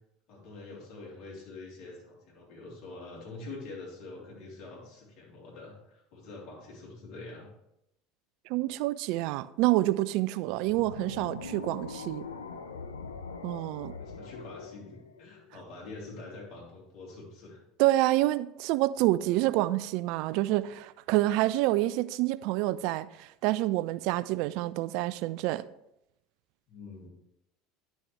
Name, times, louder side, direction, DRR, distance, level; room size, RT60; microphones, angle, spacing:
voice 1, 0.3-7.5 14.0-17.6 26.7-27.1, left 3 dB, 55° left, 3.3 m, -45 dB
voice 2, 8.5-12.2 13.4-13.9 17.8-25.6, right 17 dB, 60° right, 0.3 m, -27 dB
sound 1, 10.6-15.9, left 4 dB, 85° left, 0.5 m, -42 dB
10.5 x 6.2 x 3.2 m
hypercardioid pair, 75°, 0 cm